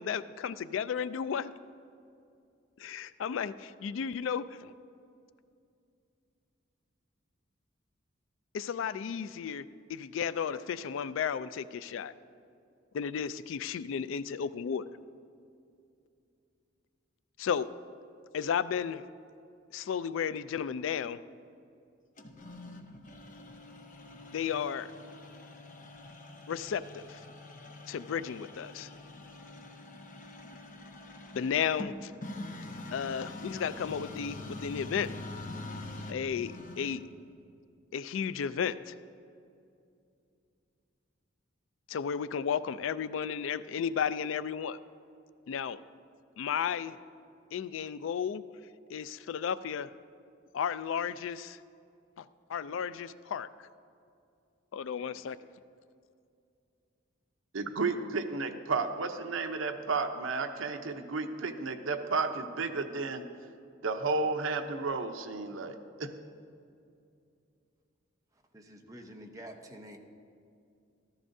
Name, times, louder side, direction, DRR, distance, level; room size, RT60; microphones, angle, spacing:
voice 1, 0.0-1.5 2.8-4.7 8.5-12.1 12.9-15.0 17.4-17.7 18.3-19.0 19.7-21.2 24.3-24.9 26.5-27.2 27.9-28.9 31.3-32.1 32.9-35.1 36.1-37.0 37.9-39.0 41.9-44.8 45.5-45.8 46.4-47.0 47.5-48.4 48.9-49.9 50.5-51.6 52.2-53.5 54.7-55.4, left 7 dB, 70° left, 15 dB, 0.3 m, -33 dB
sound 1, 22.2-37.2, left 2 dB, 40° left, 0.7 m, -45 dB
voice 2, 57.5-63.2 63.8-66.1, right 4 dB, 80° right, 7 dB, 0.7 m, -32 dB
voice 3, 68.5-70.0, equal, 15° right, 2 dB, 0.8 m, -48 dB
14.5 x 13.5 x 2.7 m, 2.5 s
head